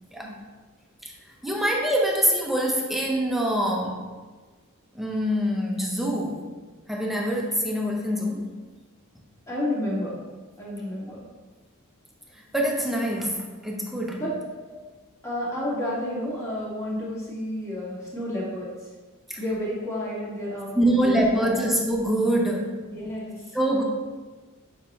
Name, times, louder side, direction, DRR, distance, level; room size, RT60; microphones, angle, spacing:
voice 1, 1.4-4.0 4.9-6.4 6.9-8.4 12.5-13.4 13.6-14.2 19.3-19.4 20.8-22.7 23.5-23.8, right 1 dB, ahead, -1 dB, 0.8 m, -24 dB
voice 2, 9.5-10.2 10.6-11.2 14.2-14.4 15.2-18.9 19.4-21.7 22.9-23.6, left 1 dB, 15° left, -7 dB, 1.9 m, -31 dB
6.8 x 5.1 x 2.9 m, 1.3 s
head